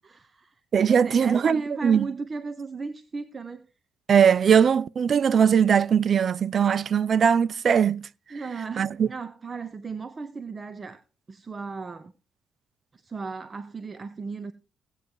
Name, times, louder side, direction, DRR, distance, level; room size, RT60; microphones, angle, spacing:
voice 1, 0.0-0.6 0.9-3.6 8.3-11.0 11.3-12.1 12.9-14.5, right 4 dB, 35° right, 0.8 m, -36 dB
voice 2, 0.7-2.1 4.1-8.1 8.8-9.1, right 7 dB, 50° right, 0.5 m, -20 dB
17.5 x 8.1 x 2.9 m
cardioid pair, 90°, 0 cm